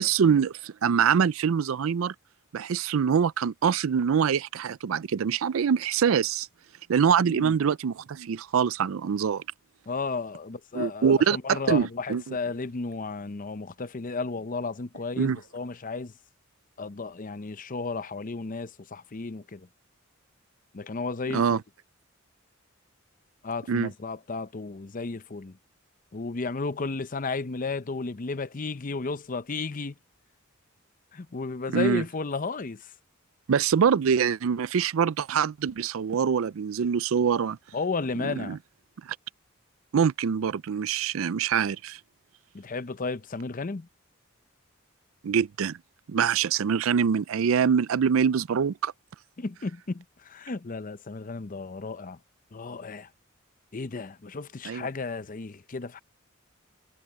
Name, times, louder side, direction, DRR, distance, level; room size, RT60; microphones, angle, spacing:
voice 1, 0.0-2.1 2.5-6.5 6.9-9.4 10.7-12.4 15.2-15.4 21.3-21.6 23.7-23.9 31.7-32.0 33.5-37.6 38.2-38.6 39.0-39.2 39.9-42.0 45.2-45.8 46.1-48.9 54.6-54.9, right 7 dB, 75° right, 0.4 m, -24 dB
voice 2, 9.9-16.1 16.8-19.7 20.7-21.6 23.4-25.6 26.1-29.9 31.1-32.9 37.7-38.6 42.5-43.9 49.4-52.2 52.5-53.1 53.7-56.0, left 4 dB, 40° left, 0.6 m, -33 dB
head